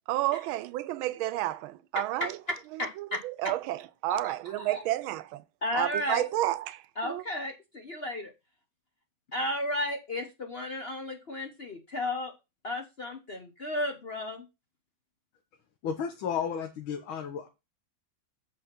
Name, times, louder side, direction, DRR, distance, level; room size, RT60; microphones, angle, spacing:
voice 1, 0.1-2.4 2.7-5.4 5.7-7.2, right 15 dB, 85° right, 1.4 m, -31 dB
voice 2, 2.5-3.2 4.1-4.8 5.6-6.2 7.0-8.3 9.3-12.3 12.6-14.4, left 1 dB, 40° left, 1.0 m, -34 dB
voice 3, 15.8-17.5, left 7 dB, 80° left, 1.9 m, -33 dB
7.8 x 5.1 x 6.0 m
omnidirectional pair, 2.2 m